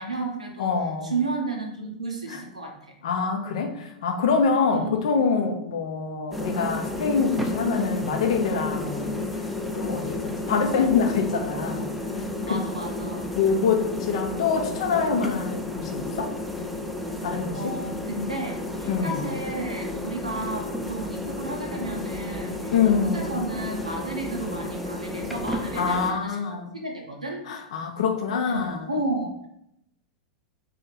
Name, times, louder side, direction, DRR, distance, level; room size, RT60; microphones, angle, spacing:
voice 1, 0.0-0.7 1.0-2.7 4.7-5.0 12.4-13.3 17.5-26.4 26.7-27.4 28.5-29.5, right 2 dB, 90° right, 1 dB, 0.7 m, -32 dB
voice 2, 0.6-1.1 2.3-2.4 3.0-9.2 9.7-11.9 12.5-12.6 13.3-16.3 17.2-17.8 18.9-19.2 22.7-23.4 25.8-26.7 27.5-28.9, left 5 dB, 65° left, 4 dB, 0.6 m, -25 dB
sound 1, 6.3-26.1, left 2 dB, ahead, 0.4 m, -32 dB
2.9 x 2.5 x 3.8 m, 0.77 s
figure-of-eight pair, 90°, 4 cm